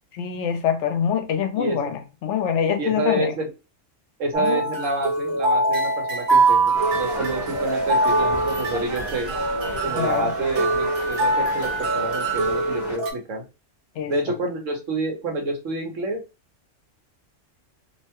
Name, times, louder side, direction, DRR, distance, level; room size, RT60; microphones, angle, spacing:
voice 1, 0.2-3.3 4.4-4.6 9.9-10.3 14.0-14.1, left 8 dB, 75° left, 0.9 m, -25 dB
voice 2, 2.8-3.5 4.2-9.3 9.8-13.4 14.1-16.2, right 2 dB, 80° right, 1.3 m, -28 dB
sound 1, 4.3-13.1, right 2 dB, 60° right, 0.9 m, -23 dB
sound 2, 6.7-13.0, equal, 40° right, 1.3 m, -34 dB
2.9 x 2.1 x 2.8 m
omnidirectional pair, 1.3 m